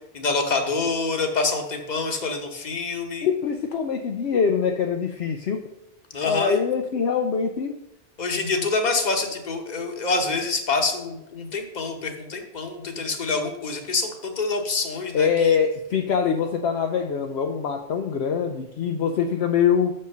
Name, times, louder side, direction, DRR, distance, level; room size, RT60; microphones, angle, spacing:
voice 1, 0.1-3.3 6.1-6.6 8.2-15.6, left 3 dB, 40° left, 4 dB, 1.2 m, -26 dB
voice 2, 3.2-5.7 6.2-7.8 15.1-19.9, left 6 dB, 65° left, 4 dB, 0.8 m, -23 dB
6.3 x 5.5 x 6.6 m, 0.88 s
omnidirectional pair, 1.2 m